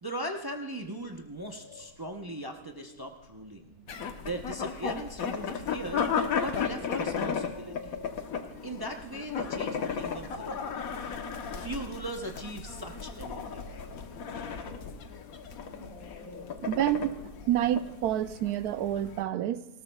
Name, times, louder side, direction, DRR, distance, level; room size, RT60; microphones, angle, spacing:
voice 1, 0.0-3.7 4.2-6.0 6.4-8.0 8.6-10.7 11.5-13.6, right 1 dB, 35° right, 3 dB, 0.4 m, -39 dB
sound 1, 0.8-19.3, right 2 dB, 40° left, 5.2 m, -55 dB
sound 2, 3.9-19.2, left 6 dB, 70° left, 1.3 m, -35 dB
voice 2, 16.6-17.2 17.5-19.8, right 12 dB, 85° right, 13 dB, 1.1 m, -28 dB
19.0 x 17.5 x 2.3 m, 0.96 s
omnidirectional pair, 1.6 m